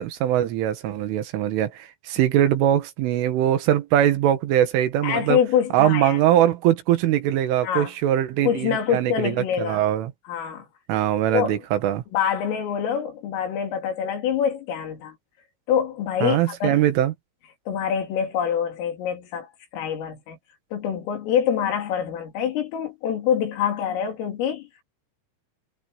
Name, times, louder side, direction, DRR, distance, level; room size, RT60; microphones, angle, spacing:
voice 1, 0.0-5.4 5.7-10.1 10.9-12.0 16.2-17.1, right 12 dB, 75° right, 4.1 m, -22 dB
voice 2, 5.0-6.2 7.6-7.9 8.4-9.8 10.3-10.7 11.3-11.6 12.1-15.2 15.7-16.8 17.7-20.4 20.7-24.7, left 8 dB, 80° left, 6.0 m, -25 dB
omnidirectional pair, 5.8 m